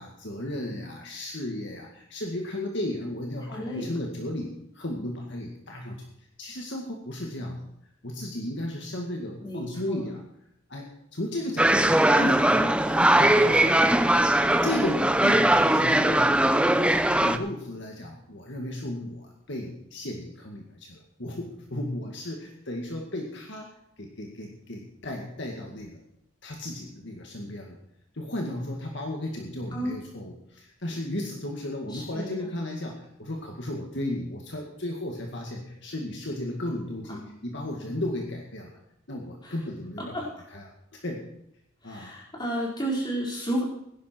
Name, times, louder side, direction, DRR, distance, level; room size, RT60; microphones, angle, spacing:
voice 1, 0.0-6.0 6.4-7.7 8.0-10.2 10.7-14.2 14.6-23.7 24.0-26.0 26.4-27.8 28.1-38.8 39.1-40.2 40.5-40.7 40.9-41.2 41.8-42.1, left 1 dB, 55° left, 0 dB, 2.1 m, -34 dB
voice 2, 3.4-4.0 9.4-10.1 29.7-29.9 31.9-32.3 37.1-37.2 39.4-39.5 40.1-40.2 41.8-43.6, right 1 dB, 20° left, -3 dB, 4.5 m, -32 dB
sound 1, 11.6-17.4, right 1 dB, 5° right, 0.5 m, -20 dB
16.5 x 11.0 x 4.6 m, 0.76 s
head